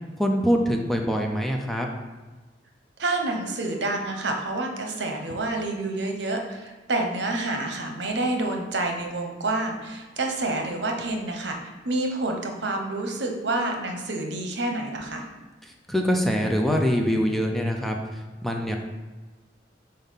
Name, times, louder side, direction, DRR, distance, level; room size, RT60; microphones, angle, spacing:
voice 1, 0.2-1.9 15.6-18.8, equal, ahead, 1 dB, 0.6 m, -24 dB
voice 2, 3.0-11.6 11.8-15.2, right 2 dB, 70° right, 3 dB, 1.0 m, -28 dB
5.5 x 4.5 x 5.7 m, 1.3 s
head